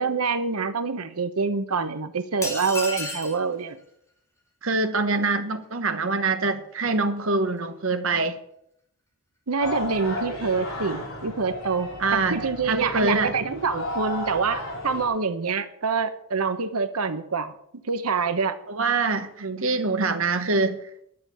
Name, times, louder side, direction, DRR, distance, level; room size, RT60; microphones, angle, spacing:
voice 1, 0.0-3.8 9.5-17.5 17.9-18.6 19.4-19.7, right 4 dB, 90° right, 1.0 m, -26 dB
sound 1, 2.4-3.4, left 1 dB, 15° left, 2.5 m, -31 dB
voice 2, 4.6-8.4 12.0-13.4 18.7-20.8, right 3 dB, 65° right, 1.2 m, -24 dB
sound 2, 9.6-15.1, left 2 dB, 70° left, 4.8 m, -34 dB
11.0 x 7.3 x 7.9 m
head